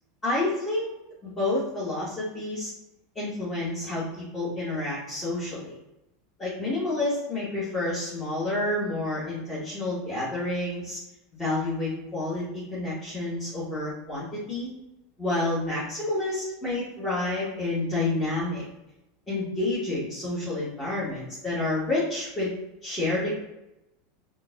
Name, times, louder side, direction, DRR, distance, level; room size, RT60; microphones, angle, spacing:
voice 1, 0.2-0.9 1.2-2.7 3.1-5.8 6.4-11.0 11.4-14.7 15.2-18.6 19.3-22.5 22.8-23.3, left 2 dB, 20° left, -9 dB, 1.4 m, -29 dB
3.7 x 2.6 x 2.5 m, 0.91 s
hypercardioid pair, 85°, 0 cm